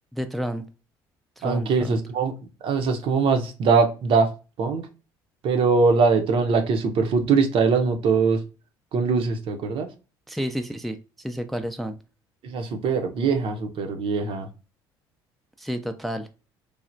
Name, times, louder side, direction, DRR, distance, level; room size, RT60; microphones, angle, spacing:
voice 1, 0.1-0.6 1.4-2.0 10.3-11.0 11.2-12.0 15.6-16.3, equal, ahead, 0.3 m, -30 dB
voice 2, 1.4-2.3 2.6-4.3 4.6-4.9 5.4-8.4 8.9-9.9 12.4-14.5, right 4 dB, 60° right, 0.6 m, -22 dB
3.2 x 2.0 x 2.5 m
hypercardioid pair, 65°, 10 cm